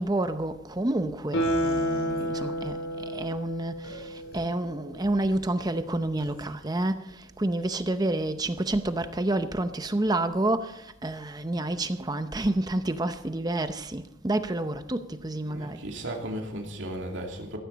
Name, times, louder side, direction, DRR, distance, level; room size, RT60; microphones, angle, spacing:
voice 1, 0.0-15.8, right 1 dB, 20° right, 0.7 m, -29 dB
Guitar, 1.3-4.6 4.9-5.0, equal, 85° left, 5.2 m, -30 dB
sound 1, 1.4-2.7 3.8-4.4 4.9-5.3 6.2-6.4, left 1 dB, 50° left, 6.9 m, -46 dB
voice 2, 15.4-17.6, right 1 dB, 65° right, 2.7 m, -35 dB
15.5 x 15.0 x 4.1 m
head